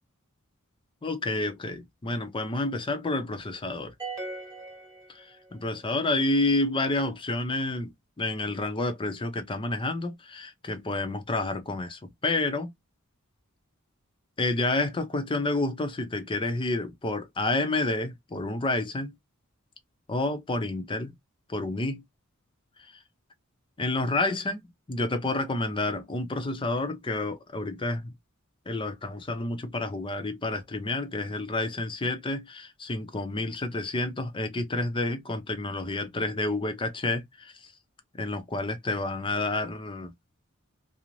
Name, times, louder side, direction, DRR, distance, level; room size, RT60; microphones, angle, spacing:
voice 1, 1.0-3.9 5.5-7.9 8.2-12.7 14.4-19.1 20.1-21.1 21.5-22.0 23.8-28.1 28.7-37.7 38.2-40.1, left 2 dB, 25° left, 0.6 m, -29 dB
sound 1, 4.0-5.7, right 3 dB, 20° right, 1.1 m, -39 dB
2.5 x 2.0 x 3.0 m
head